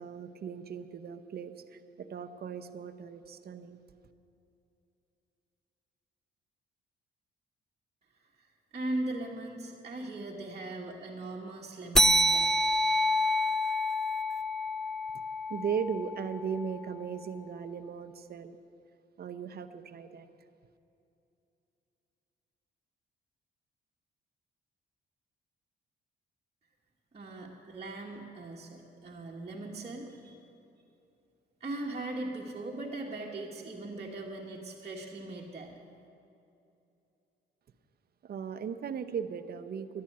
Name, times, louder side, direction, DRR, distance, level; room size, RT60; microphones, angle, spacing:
voice 1, 0.0-3.8 15.5-18.6 19.2-20.3 38.2-40.0, right 7 dB, 50° right, 8 dB, 0.8 m, -37 dB
voice 2, 8.7-12.5 27.1-30.4 31.6-35.7, right 2 dB, 30° right, -4 dB, 1.5 m, -39 dB
sound 1, 11.9-16.9, equal, ahead, 0.4 m, -28 dB
11.5 x 10.5 x 8.7 m, 2.7 s
cardioid pair, 90°, 20 cm